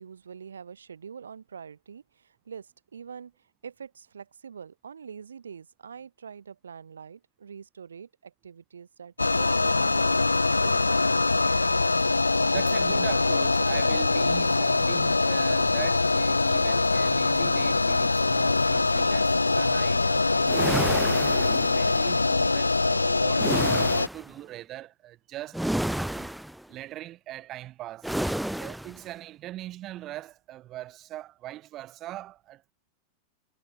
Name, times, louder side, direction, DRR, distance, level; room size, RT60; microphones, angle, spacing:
voice 1, 0.0-10.2 10.6-11.9, right 7 dB, 70° right, 3.2 m, -44 dB
sound 1, 9.2-24.1, left 3 dB, 80° left, 0.3 m, -23 dB
voice 2, 12.5-25.7 26.1-26.3 26.7-32.7, right 14 dB, 35° right, 0.8 m, -41 dB
sound 2, 20.5-22.1 23.4-24.3 25.5-26.6 28.0-29.0, right 1 dB, ahead, 0.4 m, -30 dB
figure-of-eight pair, 90°, 0 cm